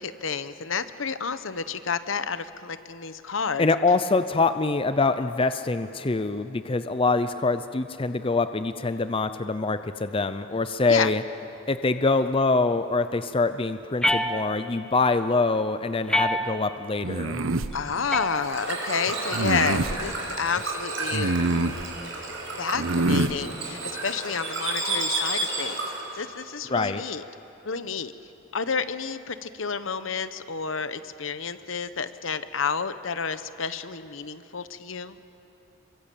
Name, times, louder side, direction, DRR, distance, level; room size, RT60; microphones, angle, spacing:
voice 1, 0.0-3.7 10.9-11.1 17.7-21.4 22.6-25.9 26.1-27.2 27.6-28.1 28.5-35.2, left 5 dB, 70° left, 12 dB, 1.0 m, -30 dB
voice 2, 3.6-11.2 11.7-17.5 26.7-27.0, left 3 dB, 25° left, 11 dB, 0.5 m, -24 dB
sound 1, 14.0-14.9 16.1-16.9 18.1-18.9, left 1 dB, 5° left, 1.0 m, -27 dB
sound 2, 17.0-17.7 19.3-20.0 21.1-21.8 22.8-23.4, right 2 dB, 80° right, 1.0 m, -25 dB
Bird / Water, 17.7-26.1, right 2 dB, 65° right, 6.3 m, -32 dB
27.5 x 23.5 x 8.5 m, 3.0 s
head